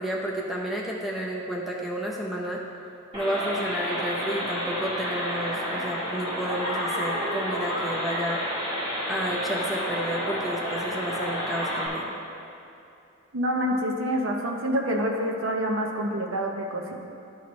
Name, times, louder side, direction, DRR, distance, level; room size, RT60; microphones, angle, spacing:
voice 1, 0.0-2.6 3.1-8.4 9.1-12.1, equal, ahead, -3 dB, 0.7 m, -31 dB
sound 1, 3.1-11.9, equal, 25° right, 1.6 m, -30 dB
voice 2, 13.3-17.0, equal, 65° right, 1 dB, 0.7 m, -27 dB
12.5 x 4.4 x 3.1 m, 2.7 s
head